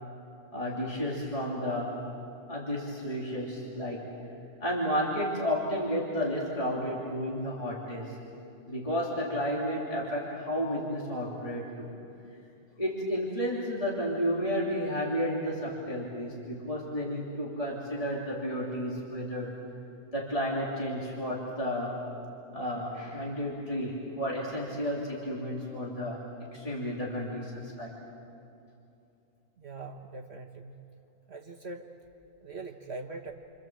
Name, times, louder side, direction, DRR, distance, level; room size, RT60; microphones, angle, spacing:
voice 1, 0.5-2.0 2.5-4.0 4.6-8.2 8.7-11.9 12.8-19.6 20.1-22.0 22.5-26.2 26.5-27.9, equal, 25° left, -4 dB, 3.1 m, -32 dB
voice 2, 29.6-30.8 31.3-31.9 32.4-33.3, right 3 dB, 55° right, 2 dB, 1.5 m, -42 dB
29.5 x 26.0 x 7.6 m, 2.7 s
omnidirectional pair, 1.4 m